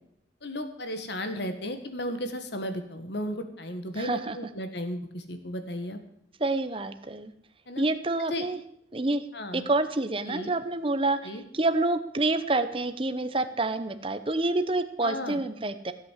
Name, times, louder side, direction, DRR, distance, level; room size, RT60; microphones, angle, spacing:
voice 1, 0.4-6.0 7.7-7.8 8.3-8.5 9.3-9.7 10.3-10.5 11.2-11.4 15.0-15.4, left 1 dB, 60° left, 8 dB, 1.7 m, -34 dB
voice 2, 3.9-4.4 6.4-7.3 7.8-8.6 8.9-9.3 9.5-15.9, right 2 dB, 30° right, 10 dB, 0.8 m, -28 dB
15.5 x 8.5 x 7.5 m, 0.72 s
head